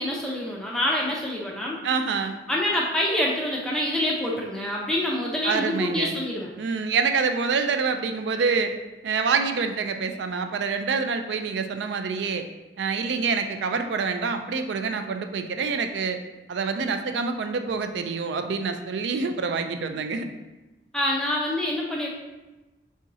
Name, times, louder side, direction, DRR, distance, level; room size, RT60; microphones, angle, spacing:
voice 1, 0.0-1.8 2.5-6.5 20.9-22.1, left 1 dB, 5° left, -3 dB, 0.4 m, -26 dB
voice 2, 1.8-2.4 5.4-6.2 6.6-8.7 9.0-12.4 12.8-16.2 16.5-20.3, right 5 dB, 65° right, 7 dB, 0.3 m, -26 dB
4.2 x 3.6 x 2.6 m, 1.1 s
head